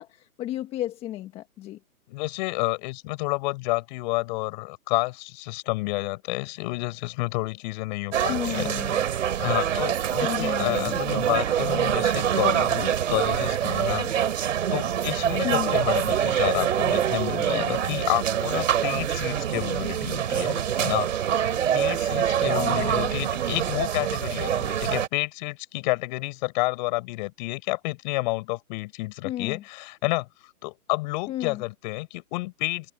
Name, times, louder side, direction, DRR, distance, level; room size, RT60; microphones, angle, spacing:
voice 1, 0.0-1.8 8.3-9.0 10.2-11.0 15.4-15.8 22.5-23.3 29.2-29.6 31.3-31.6, left 13 dB, 10° left, 1.3 m, -32 dB
voice 2, 2.1-8.7 9.4-14.1 14.7-21.4 21.7-30.3 30.6-32.9, left 23 dB, 30° left, 6.7 m, -30 dB
sound 1, 8.1-25.1, right 9 dB, 50° right, 3.9 m, -25 dB
hypercardioid pair, 150°, 47 cm